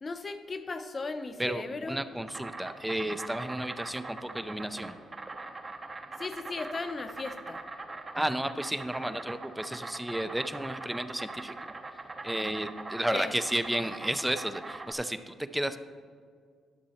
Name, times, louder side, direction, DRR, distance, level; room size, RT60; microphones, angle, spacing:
voice 1, 0.0-2.0 6.2-7.6 13.1-13.3, left 3 dB, 35° left, 8 dB, 0.8 m, -36 dB
voice 2, 1.4-5.0 8.2-11.7 12.2-15.8, right 1 dB, 5° right, 11 dB, 0.5 m, -32 dB
Insect, 2.3-14.9, right 3 dB, 30° right, 0.9 m, -42 dB
11.5 x 6.9 x 4.3 m, 2.1 s
cardioid pair, 90°, 0 cm